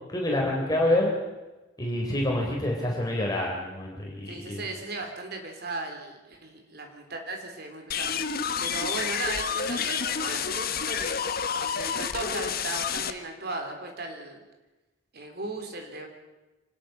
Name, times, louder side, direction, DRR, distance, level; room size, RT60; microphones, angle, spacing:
voice 1, 0.1-1.1 1.8-4.6, left 1 dB, 20° left, -1 dB, 3.7 m, -27 dB
voice 2, 4.3-8.1 8.6-11.2 11.5-14.4 15.1-16.1, right 2 dB, 55° right, 4 dB, 3.7 m, -36 dB
sound 1, 7.9-13.1, left 7 dB, 55° left, 1.2 m, -29 dB
25.0 x 20.0 x 6.0 m, 1.1 s
head